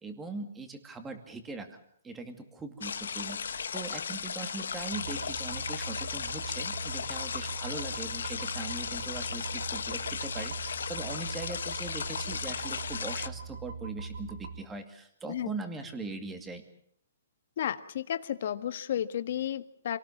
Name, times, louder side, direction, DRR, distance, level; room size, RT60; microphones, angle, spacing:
voice 1, 0.0-16.6, right 3 dB, 10° right, 7 dB, 2.3 m, -41 dB
sound 1, 2.8-13.3, left 6 dB, 85° left, 1.3 m, -36 dB
sound 2, 4.9-14.6, right 4 dB, 75° right, 3.1 m, -41 dB
voice 2, 17.6-20.0, left 10 dB, 50° left, 10 dB, 1.7 m, -32 dB
27.5 x 18.5 x 7.3 m, 0.64 s
hypercardioid pair, 165°, 0 cm